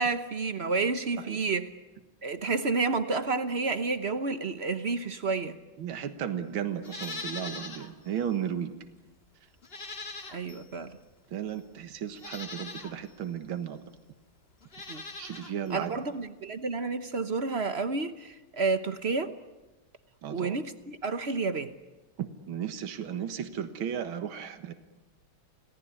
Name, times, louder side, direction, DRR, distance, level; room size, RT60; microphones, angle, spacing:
voice 1, 0.0-1.7 2.2-5.6 10.3-11.0 14.9-15.0 15.7-19.3 20.3-21.7, right 4 dB, 45° right, 10 dB, 0.9 m, -30 dB
voice 2, 5.8-8.7 11.3-13.8 15.2-16.0 20.2-20.6 22.2-24.7, right 9 dB, 75° right, 9 dB, 2.2 m, -35 dB
Livestock farm animals working animals, 6.8-7.9 8.3-8.4 9.6-10.7 11.5-11.6 12.1-12.9 14.6-15.5 15.8-15.9, left 3 dB, 30° left, 2.1 m, -41 dB
28.5 x 18.5 x 9.7 m, 1.2 s
omnidirectional pair, 2.3 m